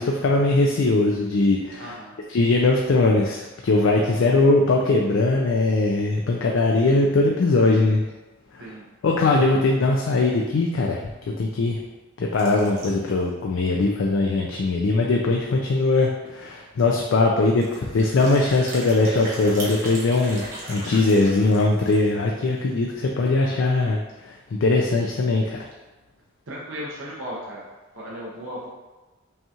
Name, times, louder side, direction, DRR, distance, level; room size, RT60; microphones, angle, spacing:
voice 1, 0.0-1.8 2.3-8.0 8.5-8.6 9.0-11.8 12.2-25.6, left 2 dB, 70° left, 0 dB, 0.4 m, -21 dB
voice 2, 1.8-2.2 8.6-8.9 26.5-27.7 27.9-28.7, equal, 70° right, -6 dB, 0.8 m, -35 dB
sound 1, 12.3-13.3 13.7-13.8 14.0-14.1 14.6-14.7 15.9-16.0 16.2-16.5 17.5-22.2, right 1 dB, 45° right, 1.1 m, -38 dB
5.4 x 2.4 x 2.8 m, 1.1 s
head